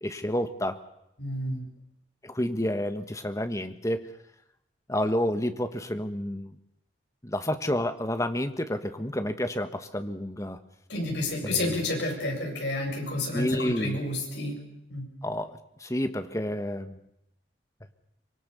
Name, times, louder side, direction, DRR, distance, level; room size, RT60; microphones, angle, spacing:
voice 1, 0.0-0.8 2.2-4.1 4.9-6.6 7.2-10.6 11.4-11.8 13.3-14.0 15.2-17.0, left 1 dB, 15° left, 9 dB, 1.5 m, -30 dB
voice 2, 1.2-1.6 10.9-14.6 14.9-15.1, left 2 dB, 70° left, 0 dB, 8.0 m, -30 dB
25.0 x 23.5 x 7.1 m, 0.81 s
head